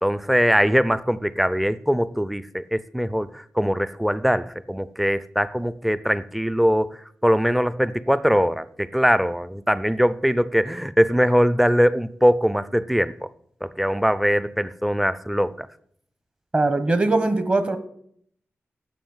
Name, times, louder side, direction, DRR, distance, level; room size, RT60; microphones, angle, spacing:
voice 1, 0.0-7.0 7.2-13.1 13.6-15.7, equal, ahead, 0.4 m, -21 dB
voice 2, 16.5-17.8, right 2 dB, 30° right, 0.9 m, -21 dB
9.3 x 7.3 x 7.1 m
wide cardioid pair, 160°, 5 cm